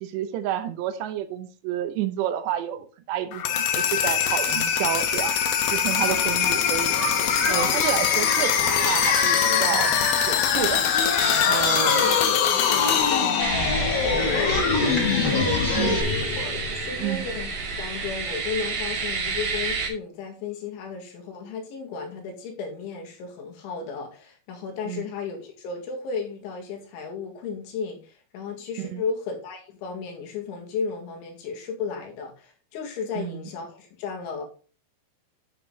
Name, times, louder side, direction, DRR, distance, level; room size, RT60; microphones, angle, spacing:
voice 1, 0.0-5.4 5.7-7.0 7.5-10.8 11.3-12.1 13.2-13.4 14.1-14.5 15.8-16.0 17.0-17.3 24.9-25.1 28.8-29.0 33.2-33.4, right 11 dB, 80° right, 10 dB, 2.9 m, -30 dB
sound 1, 3.3-17.1, left 8 dB, 70° left, 2.5 m, -23 dB
Singing, 6.1-16.0, left 3 dB, 35° left, 1.8 m, -28 dB
voice 2, 11.9-12.2 12.5-13.4 15.3-16.0 16.4-17.5 17.8-34.4, left 5 dB, 90° left, 1 dB, 4.5 m, -34 dB
sound 2, 13.4-19.9, right 4 dB, 45° right, 3.0 m, -30 dB
10.0 x 6.9 x 3.8 m, 0.37 s
omnidirectional pair, 5.2 m